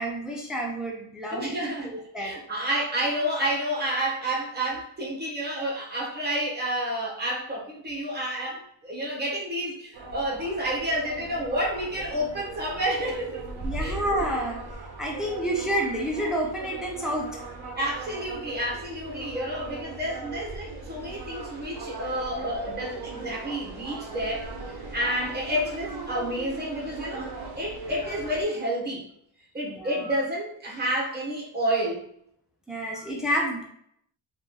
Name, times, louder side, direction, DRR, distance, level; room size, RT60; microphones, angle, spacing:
voice 1, 0.0-1.5 1.8-2.3 13.6-14.6 15.0-17.3 29.6-30.0 32.7-33.6, equal, ahead, -1 dB, 0.5 m, -29 dB
voice 2, 1.3-13.5 13.8-14.2 17.8-29.1 29.5-32.1, right 1 dB, 20° right, -3 dB, 1.0 m, -30 dB
sound 1, 9.9-28.4, right 3 dB, 50° right, 0.7 m, -39 dB
3.0 x 2.5 x 3.7 m, 0.71 s
wide cardioid pair, 150°, 48 cm